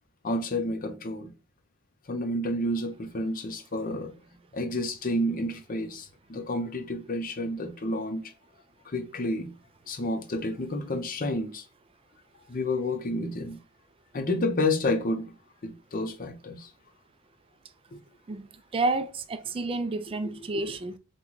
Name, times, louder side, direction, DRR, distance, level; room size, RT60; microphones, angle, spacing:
voice 1, 0.2-1.3 2.1-4.1 4.5-8.2 8.8-9.5 9.9-11.6 12.5-13.6 14.1-15.3 15.6-16.7 17.9-18.0 20.2-20.8, left 1 dB, 40° left, 0.6 m, -30 dB
voice 2, 18.7-21.0, right 2 dB, 25° right, 0.3 m, -30 dB
4.5 x 2.2 x 3.9 m
head